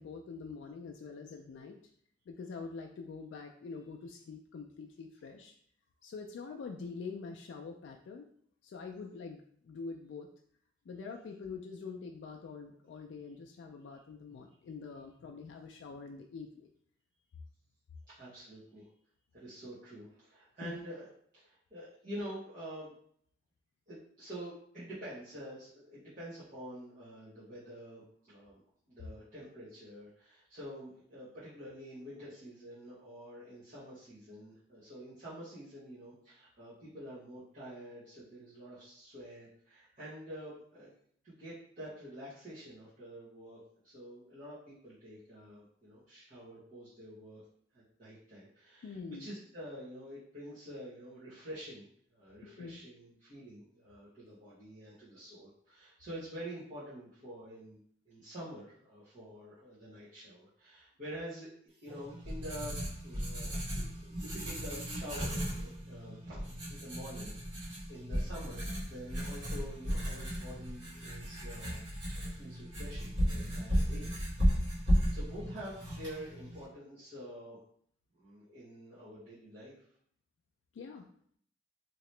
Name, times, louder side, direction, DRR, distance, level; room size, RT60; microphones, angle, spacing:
voice 1, 0.0-1.8 2.3-5.5 6.0-8.3 8.6-10.3 10.9-16.7 20.6-20.8 48.8-49.3 52.4-52.8 80.7-81.1, left 4 dB, 75° left, 3 dB, 0.3 m, -45 dB
voice 2, 18.1-18.9 19.3-21.1 21.3-22.9 23.9-28.6 28.9-40.9 41.2-43.6 43.8-47.4 47.7-57.8 58.1-61.5 61.8-71.8 72.1-74.1 74.6-77.6 78.1-79.7, equal, 45° right, -12 dB, 1.1 m, -47 dB
Writing, 61.9-76.7, equal, 85° right, 1.4 m, -35 dB
2.9 x 2.8 x 3.2 m, 0.64 s
head